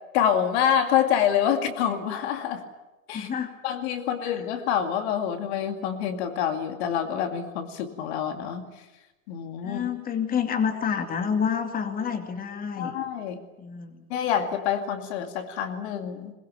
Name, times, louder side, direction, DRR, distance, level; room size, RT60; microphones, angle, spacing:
voice 1, 0.1-2.7 3.1-3.3 3.6-8.7 9.3-9.9 12.8-13.4 14.1-16.3, left 9 dB, 50° left, 7 dB, 2.4 m, -26 dB
voice 2, 3.1-3.6 4.2-4.3 9.6-13.0 13.6-14.1, left 7 dB, 20° left, 6 dB, 2.5 m, -28 dB
21.5 x 21.0 x 9.2 m, 1.0 s
hypercardioid pair, 105°, 41 cm